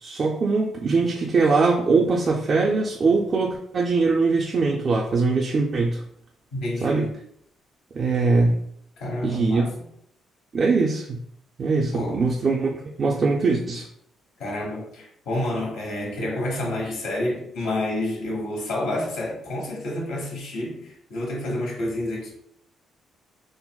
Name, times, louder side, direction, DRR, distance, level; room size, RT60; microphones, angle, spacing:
voice 1, 0.0-6.0 6.8-7.1 7.9-8.6 9.2-9.7 10.5-11.2 11.6-12.7 13.0-13.9, right 4 dB, 45° right, -2 dB, 0.4 m, -21 dB
voice 2, 6.5-7.2 9.0-9.9 11.9-12.2 14.4-22.3, left 1 dB, 85° left, -2 dB, 1.0 m, -29 dB
3.8 x 2.0 x 2.2 m, 0.70 s
cardioid pair, 90°, 0 cm